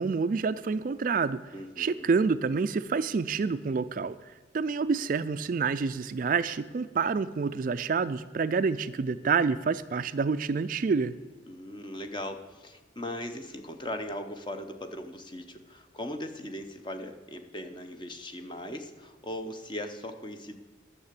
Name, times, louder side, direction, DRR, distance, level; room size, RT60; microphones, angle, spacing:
voice 1, 0.0-1.4 1.8-11.1, right 5 dB, 45° right, 13 dB, 0.3 m, -28 dB
voice 2, 1.5-2.1 11.5-20.6, left 1 dB, 25° left, 7 dB, 0.8 m, -39 dB
11.5 x 6.8 x 8.3 m, 1.4 s
head